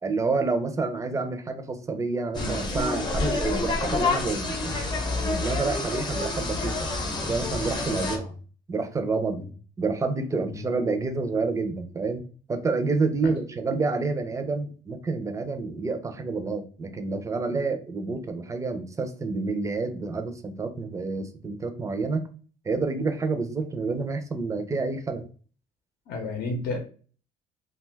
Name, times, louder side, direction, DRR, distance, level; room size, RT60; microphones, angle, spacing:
voice 1, 0.0-4.8 5.2-6.9 7.3-8.3 8.7-9.4 9.8-12.2 12.5-22.3 22.6-25.2, right 3 dB, 20° right, 7 dB, 0.5 m, -28 dB
sound 1, 2.3-8.2, left 3 dB, 25° left, 0.7 m, -28 dB
voice 2, 7.8-8.3 9.3-9.5 10.5-10.6 13.2-13.3 26.1-26.8, left 3 dB, 65° left, 2 dB, 0.7 m, -32 dB
2.4 x 2.3 x 3.2 m, 0.40 s
cardioid pair, 110°, 17 cm